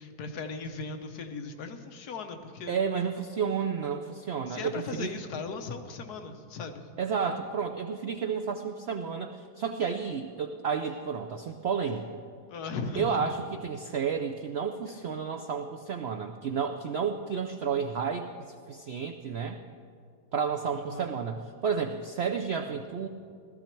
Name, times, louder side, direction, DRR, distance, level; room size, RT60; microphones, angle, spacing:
voice 1, 0.0-2.7 4.5-6.8 12.5-13.2 20.7-21.1, left 4 dB, 70° left, 6 dB, 1.4 m, -38 dB
voice 2, 2.7-5.1 7.0-12.1 13.0-18.3 18.7-19.6 20.3-23.1, right 6 dB, 75° right, 6 dB, 0.5 m, -31 dB
Tick-tock, 9.8-9.9 10.8-10.9 11.8-12.0 12.8-13.0 13.8-13.9 14.8-14.9, equal, 25° left, 4.8 m, -59 dB
16.5 x 13.0 x 4.5 m, 2.3 s
omnidirectional pair, 1.8 m